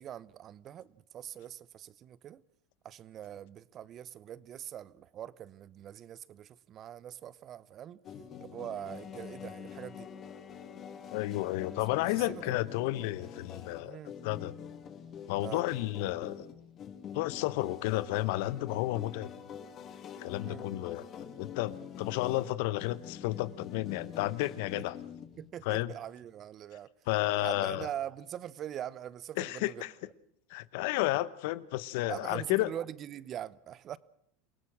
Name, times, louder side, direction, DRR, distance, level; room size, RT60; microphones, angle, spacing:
voice 1, 0.0-2.4 2.8-8.0 8.4-10.1 12.0-12.6 13.8-14.1 15.4-15.6 20.5-20.6 24.8-24.9 25.4-26.9 27.4-29.8 32.1-34.0, right 10 dB, 40° right, 0.9 m, -43 dB
sound 1, 8.0-25.5, left 8 dB, 40° left, 2.6 m, -46 dB
Bowed string instrument, 8.7-13.7, left 6 dB, 25° left, 2.0 m, -53 dB
voice 2, 11.1-14.5 15.3-16.4 17.1-19.3 20.2-25.0 25.6-25.9 27.1-27.9 29.4-29.9 30.5-32.7, left 17 dB, 70° left, 1.0 m, -32 dB
28.0 x 18.0 x 6.2 m
supercardioid pair, 105°, 0 cm